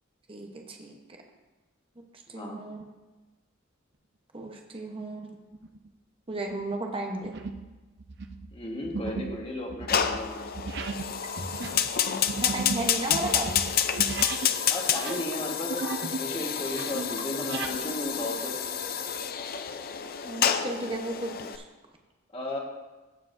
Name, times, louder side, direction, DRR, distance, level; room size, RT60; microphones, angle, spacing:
voice 1, 0.3-0.9 2.3-2.8 4.3-5.3 6.3-7.4 12.4-13.5 20.2-21.6, right 2 dB, 30° right, 1 dB, 1.0 m, -34 dB
voice 2, 2.3-2.6 8.5-10.5 14.7-18.6 22.3-22.6, left 1 dB, 30° left, 0 dB, 1.5 m, -35 dB
sound 1, 5.5-5.9 6.4-6.6 7.2-7.7 8.0-14.6 14.9-16.3 16.6-17.8, right 4 dB, 60° right, 0.6 m, -36 dB
Fire, 9.9-21.6, left 8 dB, 50° left, 0.5 m, -29 dB
sound 2, 11.2-11.7 12.1-12.3 13.1-13.6 13.9-14.2 15.0-15.4 15.8-16.2 16.8-17.2 17.6-18.0, right 1 dB, 75° right, 1.5 m, -38 dB
16.0 x 7.2 x 2.6 m, 1.2 s
head